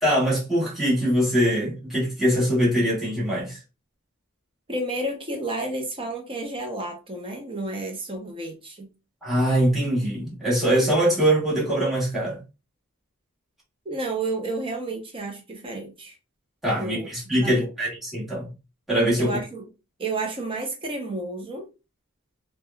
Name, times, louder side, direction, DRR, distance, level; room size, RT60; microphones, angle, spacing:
voice 1, 0.0-3.6 9.2-12.4 16.6-18.5 18.9-19.4, equal, ahead, 1.2 m, -22 dB
voice 2, 4.7-8.9 13.9-16.1 16.8-17.1 17.4-17.7 19.2-19.7 20.0-21.7, right 2 dB, 25° right, 0.6 m, -31 dB
3.4 x 2.1 x 2.2 m
head